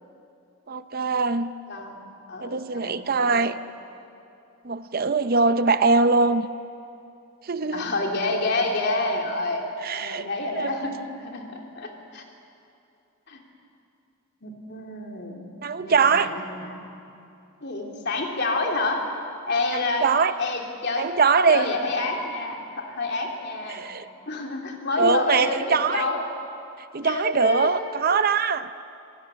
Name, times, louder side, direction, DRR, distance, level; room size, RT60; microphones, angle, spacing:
voice 1, 0.7-1.5 2.4-3.5 4.7-6.5 7.5-7.9 9.8-10.2 10.6-10.7 15.6-16.3 20.0-20.3 21.0-21.7 23.7-24.1 25.0-26.0 26.9-28.7, right 4 dB, 45° right, 12 dB, 0.6 m, -22 dB
voice 2, 1.7-2.0 2.3-3.4 7.7-9.7 9.9-12.2 13.3-13.4 14.4-15.4 15.8-16.8 17.6-19.0 19.5-20.1 20.4-21.1 21.5-23.8 24.3-26.3 27.0-27.8, left 2 dB, 50° left, 1 dB, 3.2 m, -28 dB
26.0 x 16.5 x 9.9 m, 2.6 s
head